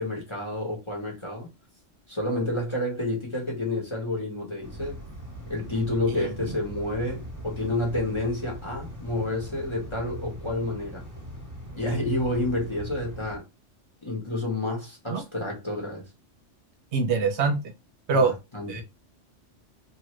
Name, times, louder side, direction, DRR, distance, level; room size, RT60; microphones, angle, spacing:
voice 1, 0.0-1.5 2.1-5.0 5.5-11.0 11.8-13.4 14.0-16.0 18.1-18.8, left 1 dB, 25° left, 1.0 m, -29 dB
sound 1, 4.6-13.4, equal, 15° right, 1.0 m, -40 dB
voice 2, 16.9-17.6 18.1-18.3 18.7-18.8, right 4 dB, 70° right, 0.9 m, -24 dB
2.7 x 2.4 x 3.0 m
omnidirectional pair, 1.3 m